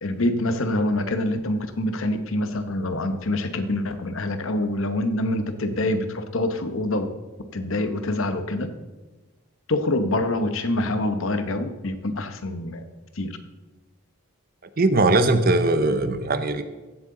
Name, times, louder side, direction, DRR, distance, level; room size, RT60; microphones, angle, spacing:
voice 1, 0.0-7.1 7.5-8.7 9.7-12.8 13.2-13.3, left 1 dB, 65° left, 9 dB, 0.9 m, -25 dB
voice 2, 14.8-16.6, right 2 dB, 40° right, 11 dB, 0.6 m, -20 dB
15.0 x 7.8 x 3.8 m, 1.2 s
head